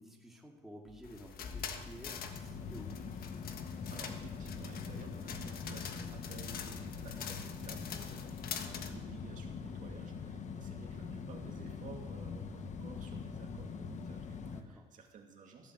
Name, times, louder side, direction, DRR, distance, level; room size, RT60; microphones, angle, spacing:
voice 1, 0.0-3.2 8.6-8.8 14.4-14.9, equal, ahead, -1 dB, 2.2 m, -52 dB
sound 1, 0.9-14.6, left 5 dB, 45° left, 1.1 m, -43 dB
sound 2, 1.0-8.9, left 7 dB, 60° left, 1.4 m, -45 dB
voice 2, 3.9-15.7, right 5 dB, 50° right, 1 dB, 2.3 m, -54 dB
15.0 x 8.3 x 7.8 m, 1.2 s
cardioid pair, 110°, 17 cm